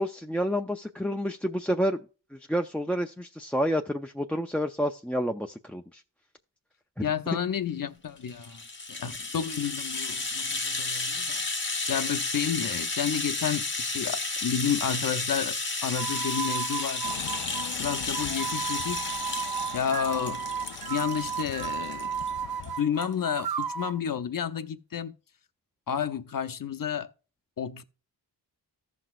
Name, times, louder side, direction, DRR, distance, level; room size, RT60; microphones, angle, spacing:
voice 1, 0.0-2.0 2.3-6.0 7.0-7.1, equal, 5° left, 0.5 m, -29 dB
voice 2, 7.0-8.6 8.9-11.4 11.9-17.1 17.8-19.1 19.7-20.5 20.9-22.1 22.8-25.2 25.9-27.1 27.6-27.8, left 8 dB, 55° left, 0.8 m, -31 dB
Rattle (instrument), 8.2-22.3 22.6-22.7 23.0-23.1, left 3 dB, 30° left, 1.1 m, -33 dB
sound 1, 15.8-24.0, right 7 dB, 65° right, 0.6 m, -34 dB
sound 2, 17.0-22.8, left 11 dB, 90° left, 0.6 m, -43 dB
15.0 x 5.9 x 2.4 m
wide cardioid pair, 80°, 41 cm